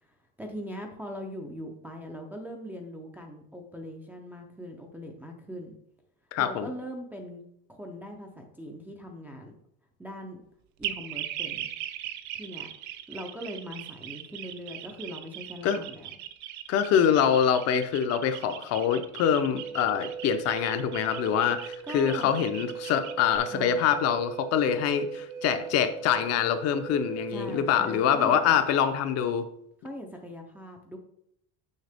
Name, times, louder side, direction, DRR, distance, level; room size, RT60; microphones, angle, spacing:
voice 1, 0.0-5.7 6.4-7.4 7.7-9.5 10.0-10.4 10.8-11.7 12.4-12.7 13.1-16.2 21.8-22.3 23.5-23.9 27.3-28.6 29.8-31.0, equal, 5° right, 0 dB, 0.4 m, -41 dB
voice 2, 6.3-6.7 15.6-15.8 16.7-29.5, left 8 dB, 45° left, 9 dB, 0.6 m, -25 dB
sound 1, 10.8-23.4, right 12 dB, 55° right, 0.6 m, -39 dB
Wind instrument woodwind instrument, 19.3-28.6, right 7 dB, 80° right, 1.0 m, -39 dB
6.5 x 6.4 x 3.4 m, 0.72 s
cardioid pair, 170°, 36 cm